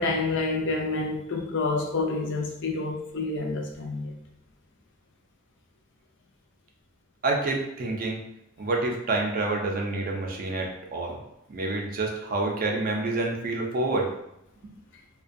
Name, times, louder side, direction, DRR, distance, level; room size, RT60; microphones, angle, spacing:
voice 1, 0.0-4.1, left 3 dB, 55° left, 0.4 m, -28 dB
voice 2, 7.2-8.2 8.6-11.2 11.5-14.1, right 2 dB, 40° right, 0.4 m, -28 dB
2.5 x 2.2 x 2.5 m
head